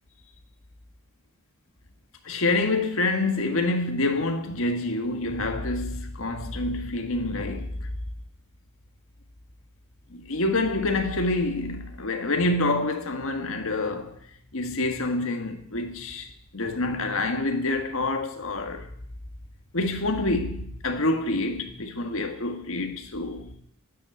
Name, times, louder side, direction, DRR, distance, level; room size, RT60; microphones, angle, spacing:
voice 1, 2.2-7.9 10.1-14.2 14.5-19.0 19.7-23.5, left 2 dB, 70° left, 1.6 m, -27 dB
12.5 x 8.6 x 9.2 m
head